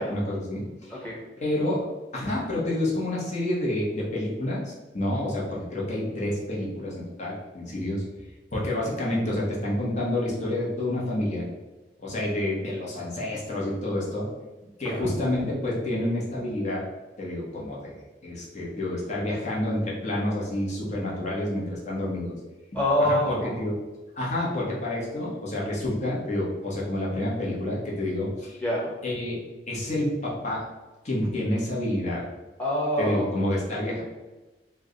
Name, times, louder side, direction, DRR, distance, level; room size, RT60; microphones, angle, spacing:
voice 1, 0.0-1.0 1.4-1.8 2.1-4.6 4.9-8.0 8.5-11.5 12.0-14.3 14.8-16.8 17.2-17.9 18.2-22.3 23.1-23.7 24.1-28.6 29.0-29.4 29.7-30.6 31.0-32.2 33.0-34.0, left 1 dB, 40° left, -4 dB, 1.0 m, -28 dB
voice 2, 0.9-1.2 14.8-15.1 22.7-23.7 28.6-28.9 32.6-33.3, equal, 10° left, -6 dB, 1.0 m, -26 dB
3.3 x 2.1 x 3.7 m, 1.1 s
head